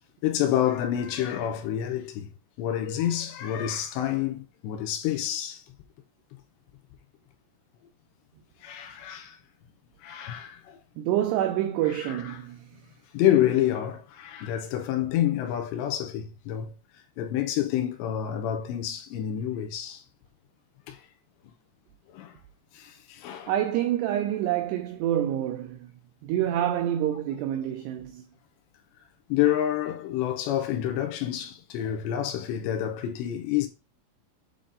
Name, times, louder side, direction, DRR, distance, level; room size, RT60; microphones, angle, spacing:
voice 1, 0.2-2.3 2.6-5.6 8.6-9.4 10.0-10.8 12.0-12.2 13.1-16.7 17.2-20.0 20.9-21.0 22.1-22.3 22.8-23.5 29.3-33.7, left 11 dB, 75° left, 2.9 m, -28 dB
voice 2, 11.0-12.7 23.5-25.9 26.2-28.2, right 11 dB, 85° right, 2.4 m, -27 dB
8.8 x 3.8 x 3.8 m
omnidirectional pair, 5.5 m